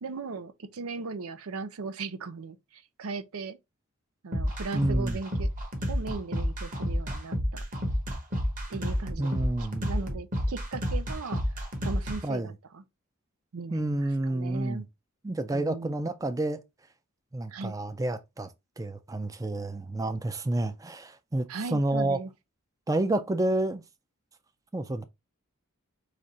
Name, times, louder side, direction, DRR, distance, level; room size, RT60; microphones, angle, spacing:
voice 1, 0.0-3.6 4.2-5.5 5.9-7.6 8.7-11.4 11.8-12.8 13.5-14.9 15.5-16.0 17.5-17.7 21.5-22.3, right 4 dB, 90° right, 0.6 m, -38 dB
sound 1, 4.3-12.2, equal, 40° right, 1.3 m, -30 dB
voice 2, 4.7-5.2 9.2-9.9 12.2-12.5 13.7-14.8 15.2-16.6 17.3-18.5 18.8-22.2 22.9-23.8 24.7-25.0, right 1 dB, 15° right, 0.4 m, -29 dB
4.9 x 2.5 x 4.2 m
head